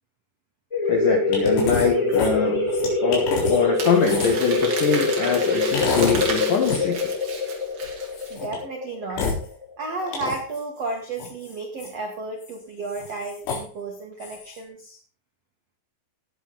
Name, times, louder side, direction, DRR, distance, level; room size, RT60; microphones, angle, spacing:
sound 1, 0.7-10.0, left 3 dB, 10° left, 1.9 m, -24 dB
voice 1, 0.9-2.6 3.0-7.1, left 6 dB, 75° left, 3 dB, 2.0 m, -23 dB
sound 2, 1.3-1.9 2.1-4.5 5.7-6.3 6.6-6.8 8.1-8.6 9.1-9.4 10.1-10.6 11.2-11.9 12.4-12.5 12.9-13.6 14.2-14.6, left 4 dB, 90° left, 6.9 m, -28 dB
Crumpling crinkling, 3.8-8.3, right 4 dB, 50° right, 4.1 m, -33 dB
voice 2, 8.3-9.3 9.8-15.0, right 3 dB, 80° right, 2 dB, 1.4 m, -33 dB
18.0 x 8.5 x 4.0 m, 0.43 s
omnidirectional pair, 5.8 m